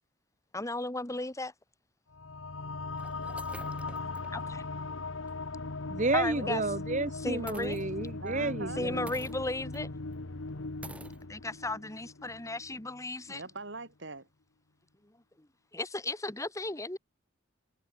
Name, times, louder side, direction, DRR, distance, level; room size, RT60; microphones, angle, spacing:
voice 1, 0.5-1.5 3.5-3.7 4.3-4.6 6.1-6.6 7.2-7.8 8.8-9.9 11.3-13.4 15.7-17.0, left 2 dB, 15° left, 1.7 m, -35 dB
sound 1, 1.4-1.5 2.3-2.4 2.9-4.3 4.8-4.9 5.3-5.4 7.5-8.3 9.1-9.8 10.1-10.2 10.8-11.2, right 1 dB, 5° right, 2.1 m, -48 dB
sound 2, 2.1-13.0, left 3 dB, 90° left, 1.3 m, -39 dB
voice 2, 5.9-9.1, right 2 dB, 40° right, 1.4 m, -31 dB
voice 3, 8.2-8.8 13.3-14.3, right 3 dB, 65° right, 4.1 m, -42 dB
head